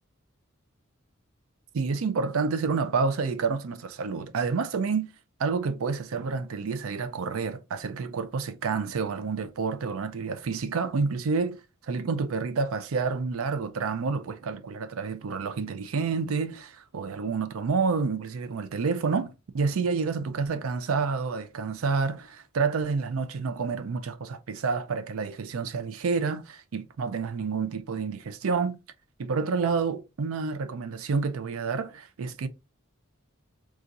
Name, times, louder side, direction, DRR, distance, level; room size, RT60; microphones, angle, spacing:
voice 1, 1.7-5.1 5.4-11.6 11.9-28.8 29.2-32.5, right 5 dB, 90° right, 0.5 m, -29 dB
4.0 x 2.4 x 2.5 m
head